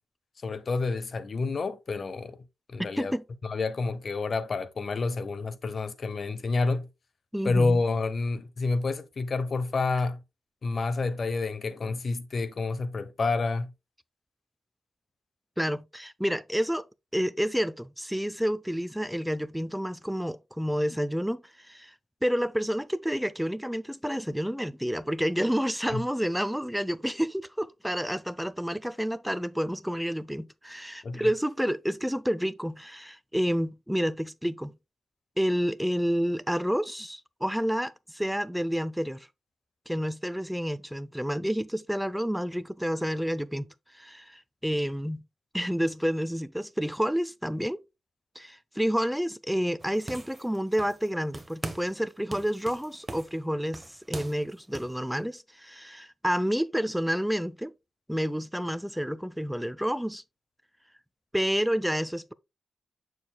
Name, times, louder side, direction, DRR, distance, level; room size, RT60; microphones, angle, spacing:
voice 1, 0.4-2.4 2.7-3.1 3.4-6.9 7.4-10.2 10.6-13.7 25.9-26.0 31.0-31.3, left 3 dB, 55° left, 0.9 m, -29 dB
voice 2, 2.8-3.2 7.3-7.8 15.6-16.9 17.1-21.9 22.2-34.7 35.4-39.3 39.9-43.7 43.9-45.2 45.5-47.8 48.4-57.7 58.1-60.2 61.3-62.3, equal, ahead, 0.5 m, -29 dB
sound 1, 49.8-51.1 51.3-52.0 52.3-55.0, right 2 dB, 25° right, 1.1 m, -41 dB
6.9 x 6.4 x 2.3 m
cardioid pair, 55°, 0 cm